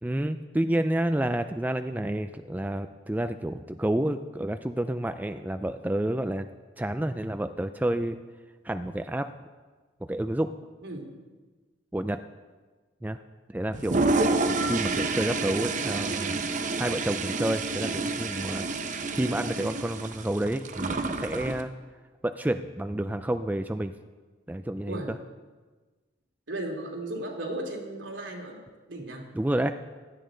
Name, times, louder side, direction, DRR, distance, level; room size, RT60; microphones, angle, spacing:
voice 1, 0.0-6.5 6.8-8.2 8.6-9.3 10.1-10.5 11.9-12.2 13.0-13.2 13.5-14.1 14.7-16.4 16.8-18.7 19.1-21.7 22.2-23.9 24.5-25.2 29.3-29.7, right 1 dB, 10° right, 9 dB, 0.3 m, -29 dB
Toilet flush, 13.7-21.6, right 3 dB, 40° right, 0.8 m, -29 dB
voice 2, 26.5-28.6 28.9-29.3, right 1 dB, 80° right, 0 dB, 2.7 m, -35 dB
16.5 x 12.5 x 3.9 m, 1.3 s
head